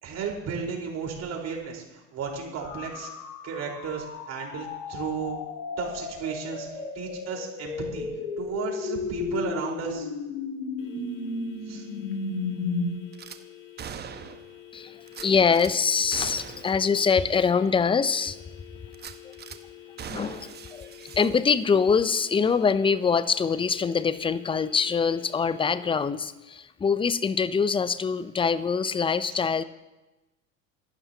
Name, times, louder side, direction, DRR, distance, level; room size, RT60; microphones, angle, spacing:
voice 1, 0.0-3.1 3.4-5.4 5.8-6.7 6.9-8.1 8.4-10.1 11.7-11.9, right 6 dB, 40° right, 0 dB, 4.5 m, -34 dB
sound 1, 2.6-12.9, left 4 dB, 70° left, 2.8 m, -34 dB
sound 2, 10.8-25.9, left 11 dB, 55° left, 2.3 m, -48 dB
Gunshot gunfire / Glass, 13.1-13.4 13.8-14.5 15.1-15.7 16.1-16.8 17.1-17.2 17.7-17.8 18.9-19.6 20.0-21.8 22.1-22.3, right 8 dB, 25° right, 1.0 m, -41 dB
voice 2, 14.7-18.4 19.2-19.3 20.1-20.9 21.2-29.6, left 5 dB, 15° left, 16 dB, 0.6 m, -24 dB
25.0 x 12.0 x 2.9 m, 1.1 s
hypercardioid pair, 85°, 40 cm